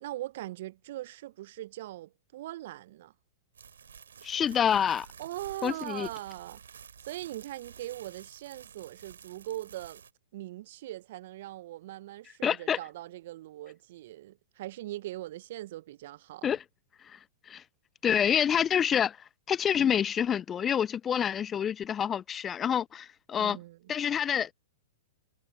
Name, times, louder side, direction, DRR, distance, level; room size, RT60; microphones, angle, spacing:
voice 1, 0.0-3.1 5.2-6.6 7.0-10.0 10.3-16.5 23.4-23.9, right 15 dB, 55° right, 0.8 m, -41 dB
sound 1, 3.5-10.1, right 7 dB, 75° right, 3.5 m, -51 dB
voice 2, 4.2-5.1 5.6-6.1 12.4-12.8 16.4-16.6 17.1-17.2 17.5-17.6 18.0-19.2 19.5-23.6 23.9-24.5, left 8 dB, 20° left, 0.3 m, -27 dB
figure-of-eight pair, 110°, 0 cm